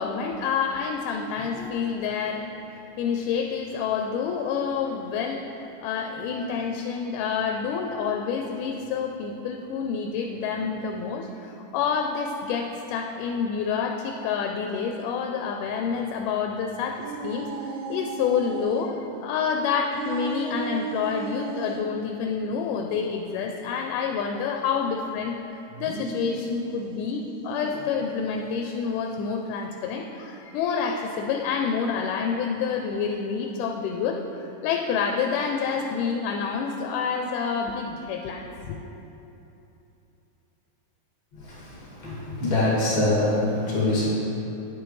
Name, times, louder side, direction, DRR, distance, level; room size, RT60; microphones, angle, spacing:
voice 1, 0.0-5.5 5.8-38.9, left 6 dB, 85° left, 3 dB, 2.1 m, -28 dB
sound 1, 17.0-18.9 19.9-21.9 25.7-27.9, right 5 dB, 75° right, 1.9 m, -35 dB
voice 2, 42.0-44.1, left 2 dB, 30° left, -7 dB, 2.3 m, -23 dB
10.0 x 8.3 x 3.1 m, 3.0 s
omnidirectional pair, 3.6 m